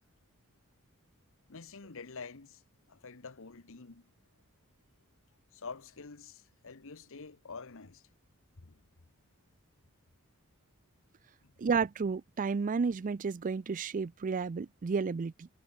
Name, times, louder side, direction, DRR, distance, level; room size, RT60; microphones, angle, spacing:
voice 1, 1.5-2.6 2.9-4.1 5.5-8.1 8.6-8.8 11.4-11.5, left 4 dB, 65° left, 1.2 m, -47 dB
voice 2, 11.6-15.5, right 5 dB, 35° right, 0.4 m, -32 dB
head